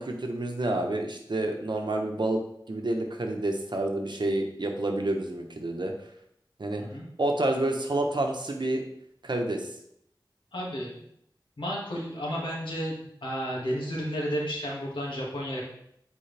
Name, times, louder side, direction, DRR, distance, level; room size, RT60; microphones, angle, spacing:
voice 1, 0.0-2.4 2.7-5.9 6.6-6.8 7.2-8.8 9.2-9.7, right 1 dB, 65° right, 3 dB, 1.1 m, -28 dB
voice 2, 10.5-11.0 11.6-12.9 13.2-15.6, equal, 90° left, -4 dB, 2.1 m, -32 dB
8.5 x 4.6 x 3.4 m, 0.73 s
wide cardioid pair, 60°, 8 cm